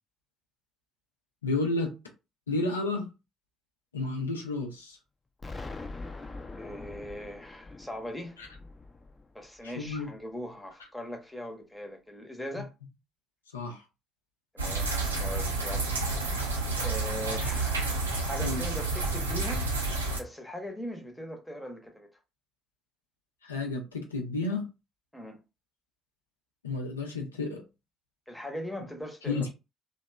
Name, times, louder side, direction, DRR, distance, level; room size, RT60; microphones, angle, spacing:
voice 1, 1.4-1.9 2.5-3.1 3.9-5.0 9.6-10.1 13.5-13.8 18.4-18.6 23.4-24.7 26.6-27.6 29.3-29.5, left 3 dB, 85° left, 0.4 m, -31 dB
Explosion, 5.4-10.3, left 3 dB, 25° left, 0.5 m, -43 dB
voice 2, 6.5-8.4 9.3-12.7 14.5-14.9 15.2-15.9 16.8-19.7 20.2-22.2 25.1-25.4 28.3-29.5, equal, 5° left, 0.8 m, -40 dB
sound 1, 14.6-20.2, right 3 dB, 85° right, 0.5 m, -30 dB
2.7 x 2.1 x 2.2 m
figure-of-eight pair, 50°, 0 cm